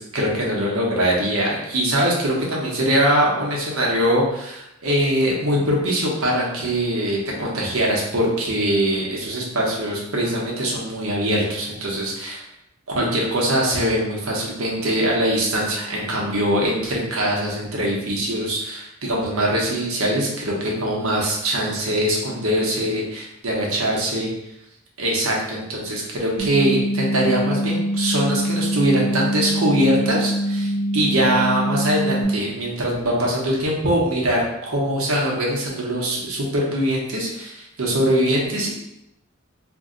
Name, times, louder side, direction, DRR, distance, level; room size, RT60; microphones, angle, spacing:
voice 1, 0.1-12.4 13.0-24.3 25.0-38.7, right 1 dB, 80° right, -2 dB, 0.9 m, -22 dB
sound 1, 26.4-32.2, equal, 40° left, 0.9 m, -24 dB
2.6 x 2.2 x 3.7 m, 0.83 s
head